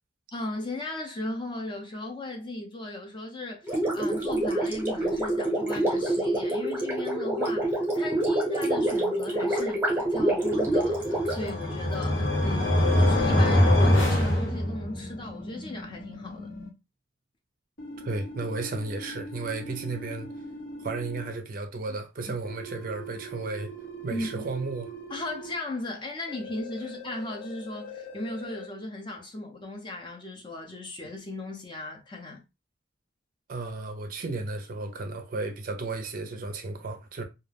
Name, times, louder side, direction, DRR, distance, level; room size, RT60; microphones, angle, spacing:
voice 1, 0.3-16.5 22.3-22.4 24.1-24.4 25.1-32.4, left 2 dB, 25° left, 0.5 m, -37 dB
Gurgling, 3.6-12.0, right 1 dB, 10° right, 0.8 m, -27 dB
sound 1, 10.8-15.1, left 1 dB, 60° left, 0.9 m, -23 dB
sound 2, 13.2-16.7 17.8-21.3 22.4-25.6 26.3-28.7, equal, 85° left, 1.0 m, -41 dB
voice 2, 18.0-20.3 20.8-23.7 24.0-24.9 33.5-37.2, right 3 dB, 45° right, 0.4 m, -34 dB
2.3 x 2.1 x 3.2 m
head